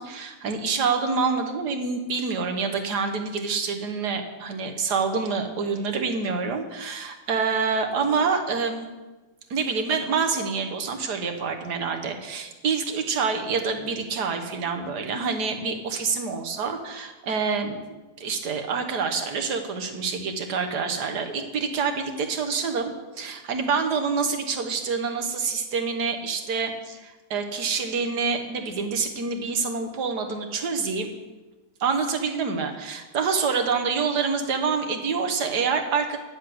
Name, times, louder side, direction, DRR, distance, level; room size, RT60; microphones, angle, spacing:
voice 1, 0.0-8.9 9.5-31.1 31.8-36.2, right 5 dB, 75° right, 5 dB, 1.8 m, -27 dB
10.5 x 7.4 x 7.7 m, 1.2 s
omnidirectional pair, 1.8 m